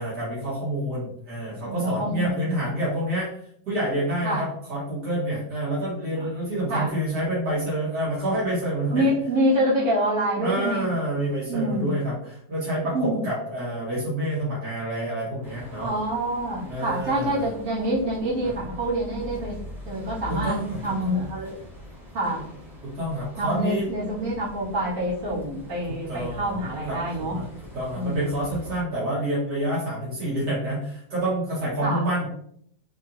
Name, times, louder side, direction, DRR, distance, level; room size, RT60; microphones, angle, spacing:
voice 1, 0.0-3.3 3.7-9.1 10.4-15.9 16.7-17.5 18.4-18.5 20.3-21.2 22.8-23.9 25.9-26.6 26.9-27.4 27.7-32.3, right 1 dB, 65° right, -8 dB, 2.0 m, -28 dB
voice 2, 1.5-2.7 4.2-4.5 6.7-6.9 8.9-10.8 11.5-11.9 12.9-13.2 15.7-19.5 19.9-21.5 22.1-22.4 23.4-27.4 28.0-28.4 31.8-32.0, right 1 dB, 45° right, -9 dB, 2.0 m, -26 dB
sound 1, 15.4-28.8, equal, ahead, 0.8 m, -42 dB
4.4 x 2.9 x 2.6 m, 0.67 s
omnidirectional pair, 2.0 m